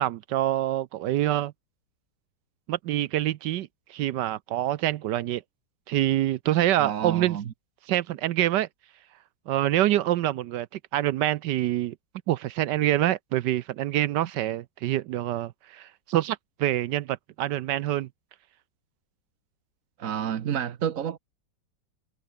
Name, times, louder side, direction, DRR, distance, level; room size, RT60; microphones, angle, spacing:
voice 1, 0.0-1.5 2.7-5.4 5.9-7.4 7.9-8.7 9.5-11.9 12.3-18.1, right 13 dB, 70° right, 1.2 m, -26 dB
voice 2, 6.8-7.4 20.0-21.2, right 9 dB, 50° right, 1.2 m, -29 dB
omnidirectional pair, 2.1 m